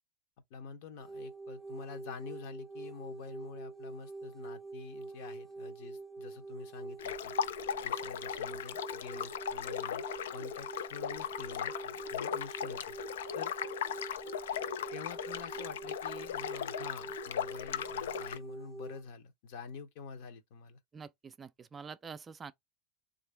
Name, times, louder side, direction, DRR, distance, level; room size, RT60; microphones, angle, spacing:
voice 1, 0.5-7.4 7.8-10.0 10.3-13.0 13.3-13.5 14.9-20.8, left 5 dB, 60° left, 0.8 m, -47 dB
sound 1, 1.0-19.0, right 3 dB, 5° left, 0.7 m, -45 dB
sound 2, 7.0-18.4, left 9 dB, 85° left, 0.4 m, -38 dB
voice 2, 20.9-22.5, right 5 dB, 20° right, 0.4 m, -46 dB
3.3 x 2.5 x 3.2 m
supercardioid pair, 120°, 0 cm